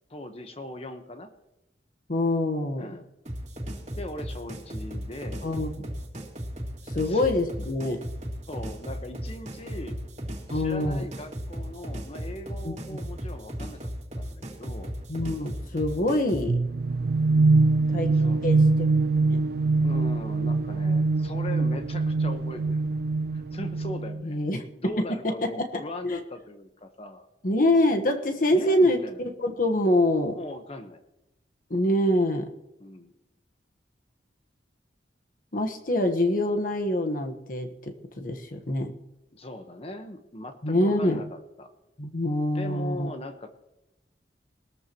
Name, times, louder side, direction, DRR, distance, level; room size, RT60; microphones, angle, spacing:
voice 1, 0.1-1.3 2.8-3.1 4.0-5.5 7.1-7.3 8.5-10.0 10.5-13.9 14.2-14.9 18.1-18.5 19.8-22.9 23.3-27.3 28.5-29.2 30.3-31.0 32.8-33.1 39.3-41.7 42.5-43.6, left 1 dB, 35° left, 7 dB, 1.1 m, -39 dB
voice 2, 2.1-2.9 5.4-5.9 6.9-8.0 10.5-11.1 12.6-13.0 15.1-16.6 17.9-18.1 18.4-18.9 19.3-19.4 24.2-24.9 25.2-26.2 27.4-29.0 29.4-30.4 31.7-32.5 35.5-38.9 40.6-41.2 42.0-43.1, left 1 dB, 50° left, 5 dB, 1.3 m, -25 dB
sound 1, 3.3-16.5, equal, 40° right, 2.4 m, -36 dB
sound 2, 16.5-24.2, right 3 dB, 60° right, 0.4 m, -23 dB
21.0 x 13.5 x 3.0 m, 0.94 s
head